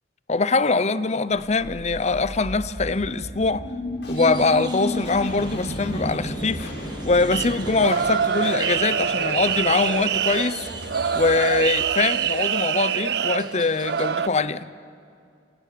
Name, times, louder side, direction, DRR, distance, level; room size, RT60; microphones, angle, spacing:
voice 1, 0.3-3.6 4.1-6.7 7.0-10.7 11.1-14.7, left 3 dB, 40° left, 0.8 m, -23 dB
sound 1, 1.3-12.4, equal, 75° left, 7.2 m, -33 dB
sound 2, 4.1-14.1, right 4 dB, 25° right, 2.4 m, -43 dB
sound 3, 7.3-14.3, right 8 dB, 65° right, 0.5 m, -25 dB
28.5 x 26.0 x 6.8 m
head